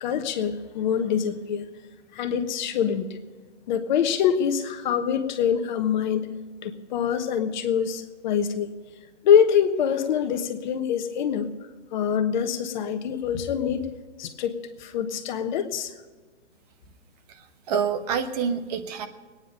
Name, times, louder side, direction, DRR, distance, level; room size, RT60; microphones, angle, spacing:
voice 1, 0.0-1.7 2.1-3.1 3.7-6.3 6.6-8.7 9.2-11.5 11.9-13.9 14.2-15.9, left 8 dB, 40° left, 8 dB, 1.3 m, -24 dB
voice 2, 17.3-19.1, right 6 dB, 35° right, 7 dB, 1.2 m, -27 dB
21.0 x 10.0 x 5.3 m, 1.4 s
hypercardioid pair, 140°, 35 cm